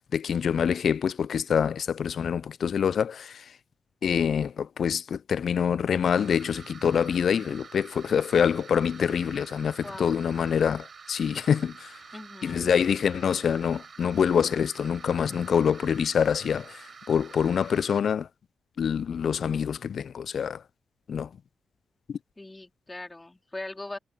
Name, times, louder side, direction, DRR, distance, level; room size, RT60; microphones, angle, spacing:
voice 1, 0.0-3.5 4.0-12.0 12.4-18.3 18.8-20.6 21.1-21.3 22.1-22.2, left 7 dB, 65° left, 0.4 m, -26 dB
sound 1, 6.2-18.0, right 5 dB, 50° right, 4.1 m, -48 dB
voice 2, 9.8-10.2 12.1-12.7 22.4-24.0, left 2 dB, 20° left, 3.9 m, -40 dB
supercardioid pair, 50°, 0 cm